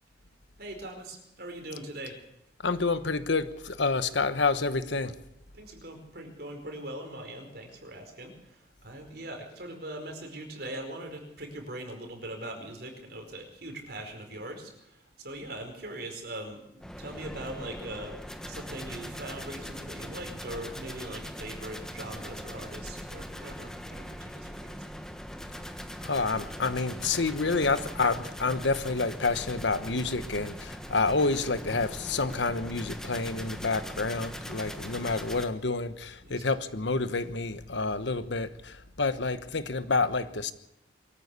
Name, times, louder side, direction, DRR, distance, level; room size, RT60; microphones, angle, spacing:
voice 1, 0.6-2.3 5.5-24.9 36.2-36.5, right 1 dB, 55° right, 4.8 m, -41 dB
voice 2, 2.6-5.2 26.0-40.5, left 3 dB, 80° left, 1.2 m, -28 dB
sound 1, 16.8-35.5, equal, 5° left, 1.3 m, -41 dB
23.0 x 14.0 x 8.3 m
head